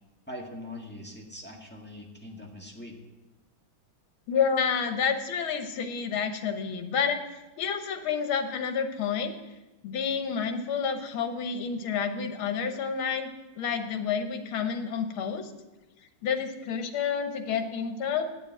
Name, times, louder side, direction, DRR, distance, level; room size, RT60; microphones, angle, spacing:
voice 1, 0.3-3.0, left 1 dB, 5° left, 0 dB, 1.4 m, -42 dB
voice 2, 4.3-9.4 9.8-13.3 13.6-15.5 16.2-18.3, left 6 dB, 80° left, 7 dB, 1.9 m, -29 dB
10.0 x 6.9 x 9.0 m, 1.1 s
omnidirectional pair, 2.3 m